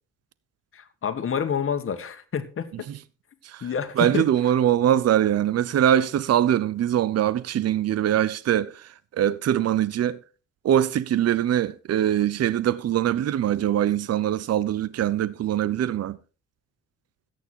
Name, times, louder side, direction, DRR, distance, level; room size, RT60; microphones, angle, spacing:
voice 1, 0.7-2.9 3.6-4.3, left 7 dB, 45° left, 1.8 m, -28 dB
voice 2, 4.0-10.2 10.6-16.2, right 11 dB, 55° right, 0.8 m, -23 dB
13.5 x 9.4 x 4.5 m
cardioid pair, 90°, 30 cm